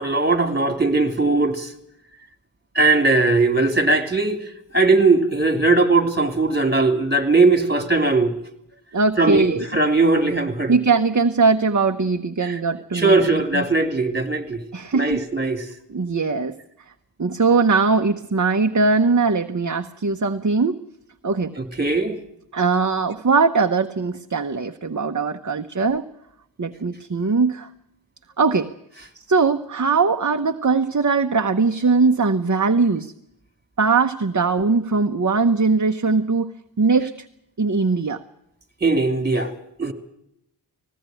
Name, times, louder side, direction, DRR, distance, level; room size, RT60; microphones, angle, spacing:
voice 1, 0.0-1.7 2.7-4.4 4.7-8.3 9.2-10.7 12.4-12.5 12.9-14.6 14.9-15.6 21.6-22.2 38.8-39.5 39.8-39.9, right 3 dB, 20° right, 2.9 m, -19 dB
voice 2, 8.9-9.7 10.7-13.3 13.5-13.7 14.7-15.2 15.9-16.6 17.2-20.8 21.2-21.5 22.5-26.1 26.6-27.7 28.4-28.7 29.3-33.1 33.8-36.5 36.8-37.3 37.6-38.2, right 4 dB, 40° right, 1.0 m, -20 dB
20.0 x 16.5 x 9.1 m
wide cardioid pair, 60°, 43 cm